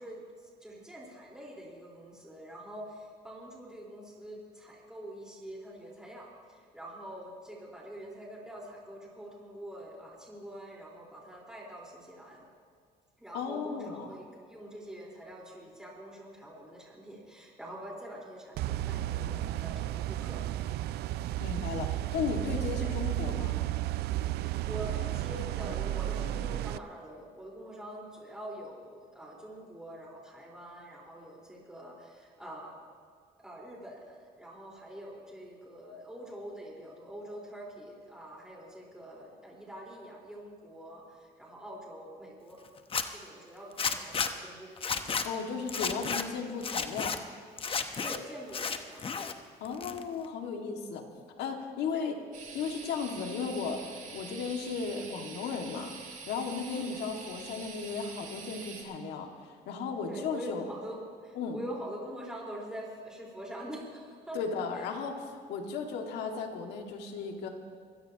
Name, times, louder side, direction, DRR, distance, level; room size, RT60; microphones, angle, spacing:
voice 1, 0.0-12.4 13.2-20.4 22.8-22.9 24.4-32.8 33.4-42.6 43.1-44.7 48.0-49.0 51.9-52.2 56.7-57.2 60.1-64.4 64.7-64.9, equal, 5° right, -4 dB, 4.3 m, -45 dB
voice 2, 13.3-14.1 21.4-23.6 45.2-47.1 49.6-51.1 51.4-52.2 52.5-55.9 56.3-60.6 61.4-61.6 64.3-67.5, left 5 dB, 80° left, 3 dB, 2.1 m, -35 dB
sound 1, 18.6-26.8, right 15 dB, 75° right, 0.5 m, -33 dB
Zipper (clothing), 42.8-43.0 43.8-44.3 44.8-45.3 45.7-46.2 46.6-47.2 47.6-48.2 48.5-49.3 49.6-50.3, left 5 dB, 30° left, 1.0 m, -32 dB
sound 2, 52.3-58.8, right 5 dB, 55° right, 3.9 m, -45 dB
24.0 x 16.5 x 3.0 m, 2.1 s
cardioid pair, 110°, 17 cm